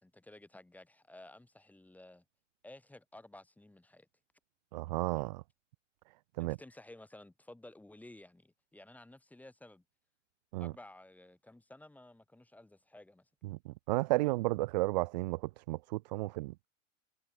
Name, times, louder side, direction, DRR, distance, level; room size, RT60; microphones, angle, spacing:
voice 1, 0.0-2.2 2.6-4.1 6.4-9.8 10.6-13.3, left 1 dB, 5° left, 4.4 m, -54 dB
voice 2, 4.7-5.4 6.4-6.6 10.5-10.7 13.4-16.7, right 20 dB, 35° right, 0.4 m, -33 dB
figure-of-eight pair, 105°, 38 cm